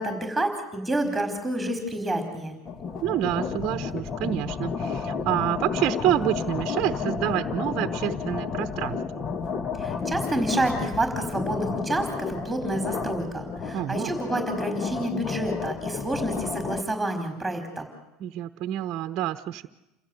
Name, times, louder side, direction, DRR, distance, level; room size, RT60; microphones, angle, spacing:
voice 1, 0.0-2.6 9.8-17.8, right 1 dB, 5° right, 6 dB, 4.9 m, -29 dB
sound 1, 2.6-16.8, left 5 dB, 35° left, 1.5 m, -31 dB
voice 2, 3.0-9.2 13.7-14.2 18.2-19.7, right 12 dB, 50° right, 8 dB, 1.0 m, -28 dB
28.5 x 15.5 x 8.1 m, 0.96 s
supercardioid pair, 105°, 0 cm